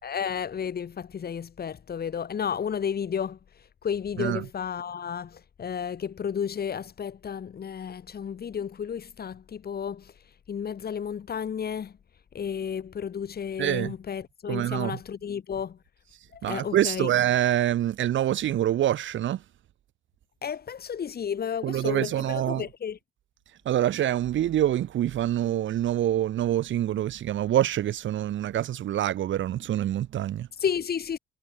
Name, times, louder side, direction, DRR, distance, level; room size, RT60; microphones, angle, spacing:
voice 1, 0.0-12.0 12.3-15.8 16.3-17.1 20.4-23.0 30.6-31.2, left 7 dB, 50° left, 5.3 m, -32 dB
voice 2, 13.6-13.9 14.5-15.0 16.4-19.4 21.6-22.6 23.7-30.5, right 12 dB, 70° right, 2.6 m, -26 dB
cardioid pair, 90°, 20 cm